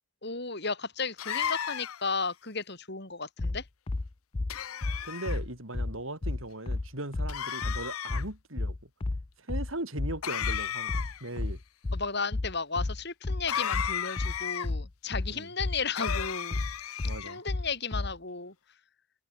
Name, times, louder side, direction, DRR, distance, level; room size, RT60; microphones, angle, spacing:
voice 1, 0.2-3.6 11.9-16.6 16.9-18.5, left 4 dB, 50° left, 4.7 m, -34 dB
sound 1, 1.2-2.1 4.5-5.4 7.3-8.2 10.2-11.3 13.5-14.7 15.9-17.4, left 9 dB, 85° left, 0.7 m, -34 dB
sound 2, 3.4-18.2, left 2 dB, 25° left, 0.4 m, -32 dB
voice 2, 5.0-8.9 9.4-11.6 15.3-15.5 17.0-17.4, right 1 dB, 70° right, 6.1 m, -39 dB
head